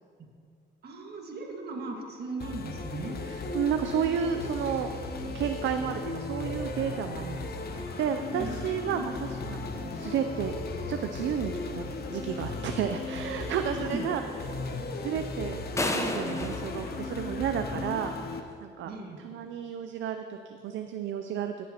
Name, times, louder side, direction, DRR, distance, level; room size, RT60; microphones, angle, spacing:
voice 1, 0.8-3.2 8.3-8.7 13.6-14.1 18.8-19.2, right 3 dB, 55° right, 0 dB, 1.7 m, -37 dB
sound 1, 2.4-18.4, left 3 dB, 50° left, 0.9 m, -36 dB
voice 2, 3.3-4.9 5.2-10.5 10.9-11.8 12.1-14.2 14.8-15.6 15.9-18.9 19.2-21.5, right 8 dB, 70° right, 7 dB, 0.5 m, -32 dB
sound 2, 15.8-17.9, left 1 dB, 15° left, 0.8 m, -33 dB
14.5 x 7.1 x 2.9 m, 2.3 s
cardioid pair, 90°, 20 cm